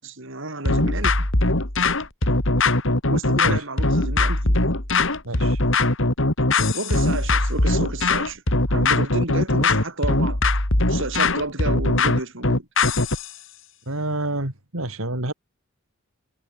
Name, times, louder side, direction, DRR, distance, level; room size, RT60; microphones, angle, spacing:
voice 1, 0.0-1.3 3.1-4.6 6.7-8.4 8.7-10.4 10.9-12.7, right 2 dB, 65° right, 7.2 m, -31 dB
sound 1, 0.7-13.3, left 2 dB, 65° left, 3.8 m, -20 dB
voice 2, 5.2-5.6 13.9-15.3, right 2 dB, 80° right, 3.7 m, -28 dB
head